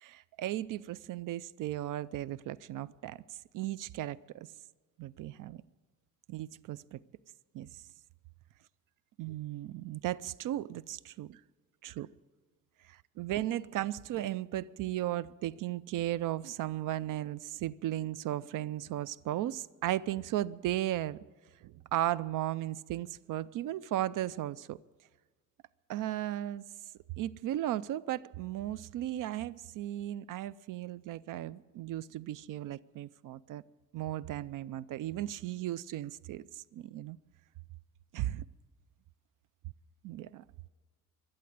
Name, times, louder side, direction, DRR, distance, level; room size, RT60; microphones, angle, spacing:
voice 1, 0.0-4.5 5.0-5.6 6.3-7.0 7.5-7.8 9.2-11.4 11.8-12.1 13.2-21.2 21.6-24.8 25.9-26.6 27.2-33.6 33.9-37.2 38.1-38.4 40.0-40.4, right 13 dB, 60° right, 21 dB, 0.5 m, -36 dB
12.0 x 11.5 x 9.3 m, 1.3 s
cardioid pair, 115°, 35 cm